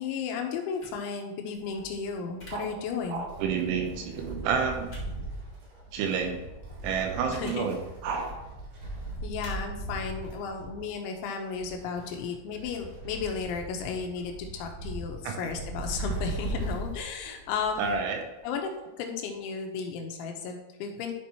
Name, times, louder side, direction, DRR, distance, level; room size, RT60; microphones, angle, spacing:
voice 1, 0.0-3.2 7.3-7.7 9.2-17.9 18.4-18.7 19.0-21.1, left 5 dB, 80° left, 3 dB, 3.2 m, -34 dB
sound 1, 0.8-1.0 2.4-2.5 3.6-3.7 4.9-5.0 6.1-6.2 7.4-7.6 8.1-8.4 9.4-9.5, left 1 dB, 50° left, 0.8 m, -48 dB
Wind, 1.6-18.2 18.5-18.6 19.5-19.6, right 1 dB, 60° right, 4.5 m, -39 dB
voice 2, 3.1-4.9 5.9-6.4 6.8-8.3 15.2-15.5 17.8-18.2, right 6 dB, 80° right, 3 dB, 3.1 m, -30 dB
12.0 x 5.2 x 3.0 m, 1.0 s
omnidirectional pair, 5.6 m